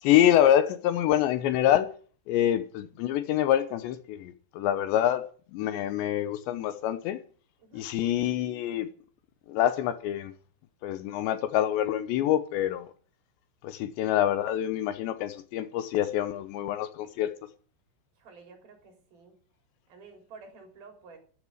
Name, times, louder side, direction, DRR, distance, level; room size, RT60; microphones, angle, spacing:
voice 1, 0.0-1.9 2.3-7.2 7.7-8.9 9.5-10.3 10.8-12.9 13.6-17.3, left 11 dB, 80° left, 3.1 m, -26 dB
voice 2, 7.6-7.9 18.2-19.4 19.9-21.2, right 4 dB, 55° right, 5.5 m, -51 dB
13.0 x 9.7 x 9.1 m
omnidirectional pair, 5.4 m